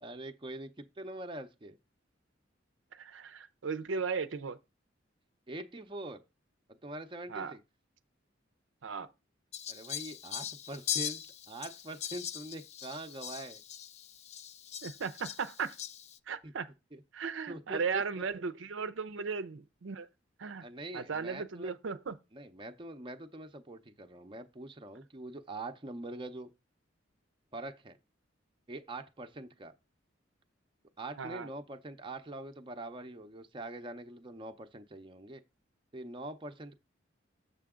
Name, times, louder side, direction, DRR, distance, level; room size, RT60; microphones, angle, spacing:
voice 1, 0.0-1.8 5.5-6.2 6.7-7.6 9.7-13.6 16.4-16.5 16.9-17.0 17.5-18.2 20.6-21.7 22.3-26.5 27.5-28.0 28.7-29.7 31.0-35.4 35.9-36.8, right 2 dB, 25° right, 0.6 m, -44 dB
voice 2, 2.9-4.6 7.3-7.5 8.8-9.1 14.8-15.8 16.3-16.7 17.1-20.1 20.4-20.7 20.9-22.2 31.2-31.5, right 5 dB, 75° right, 0.6 m, -36 dB
Fowl, 9.5-16.2, left 10 dB, 35° left, 0.3 m, -40 dB
6.8 x 6.8 x 3.7 m
head